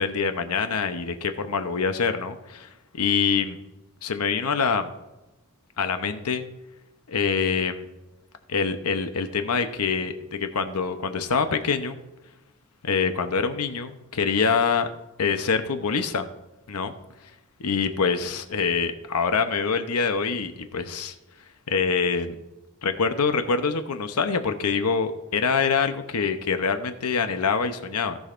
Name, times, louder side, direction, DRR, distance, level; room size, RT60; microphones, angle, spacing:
voice 1, 0.0-3.6 4.0-4.9 5.8-6.4 7.1-7.8 8.5-12.0 12.8-14.9 15.2-16.3 16.7-16.9 17.6-21.1 21.7-22.3 22.8-28.2, left 5 dB, 90° left, 8 dB, 0.8 m, -25 dB
17.0 x 6.4 x 2.5 m, 1.0 s
head